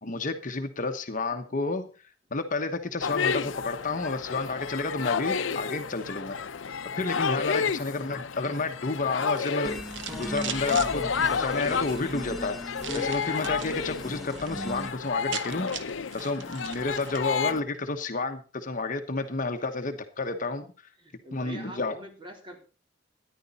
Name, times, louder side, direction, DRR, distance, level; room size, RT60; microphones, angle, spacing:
voice 1, 0.0-1.8 2.3-6.4 7.0-9.8 10.1-12.6 12.9-15.7 16.1-20.7 21.3-22.0, left 3 dB, 45° left, 6 dB, 1.0 m, -30 dB
sound 1, 3.0-17.6, left 6 dB, 90° left, 0.7 m, -31 dB
voice 2, 7.7-8.2 21.0-22.6, right 1 dB, 25° right, 1 dB, 3.7 m, -46 dB
sound 2, 9.1-10.9 11.5-12.0 12.8-13.8 14.1-14.5 14.8-14.9 15.1-17.3, right 8 dB, 70° right, 1.0 m, -40 dB
sound 3, 9.6-14.9, left 1 dB, ahead, 1.7 m, -38 dB
14.0 x 10.5 x 4.1 m, 0.36 s
head